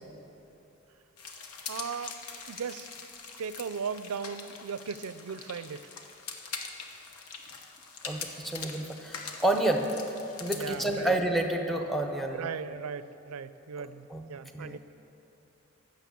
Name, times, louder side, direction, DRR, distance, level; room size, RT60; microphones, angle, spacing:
sound 1, 1.2-11.1, left 5 dB, 90° left, 1.0 m, -43 dB
voice 1, 1.7-2.2 2.5-2.9 3.4-5.9 10.5-11.1 12.3-14.8, right 6 dB, 80° right, 14 dB, 0.4 m, -37 dB
voice 2, 8.0-9.9 10.4-12.5 14.1-14.2 14.5-14.8, right 1 dB, ahead, 4 dB, 0.7 m, -29 dB
12.5 x 6.6 x 8.4 m, 2.9 s
head